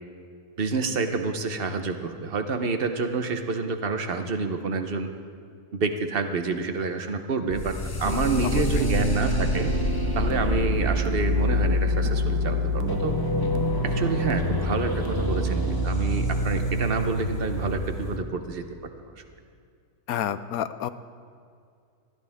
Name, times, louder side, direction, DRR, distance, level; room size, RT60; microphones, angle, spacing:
voice 1, 0.6-5.1 5.7-9.7 10.1-13.1 13.8-18.6 19.2-19.3, right 4 dB, 45° right, 7 dB, 1.0 m, -28 dB
sound 1, 7.5-18.2, left 2 dB, 30° left, 0.4 m, -26 dB
sound 2, 8.1-15.9, right 10 dB, 85° right, 1.1 m, -34 dB
voice 2, 20.1-20.9, left 10 dB, 75° left, 13 dB, 1.0 m, -29 dB
20.5 x 14.0 x 3.6 m, 2.3 s
omnidirectional pair, 1.6 m